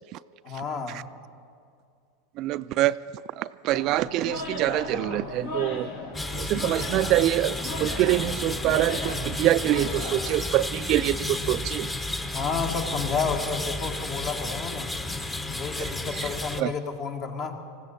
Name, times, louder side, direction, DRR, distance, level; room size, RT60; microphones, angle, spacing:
voice 1, 0.4-1.1 12.3-14.9 15.5-17.6, left 5 dB, 45° left, 4 dB, 1.7 m, -31 dB
voice 2, 2.4-3.0 3.4-5.9 6.4-11.9 15.8-15.9 16.6-16.7, right 15 dB, 50° right, 15 dB, 0.3 m, -25 dB
sound 1, 3.7-10.4, left 2 dB, 70° left, 2.1 m, -36 dB
sound 2, 6.1-16.6, left 2 dB, 15° left, 0.9 m, -32 dB
19.5 x 15.5 x 4.3 m, 2.3 s
hypercardioid pair, 95°, 0 cm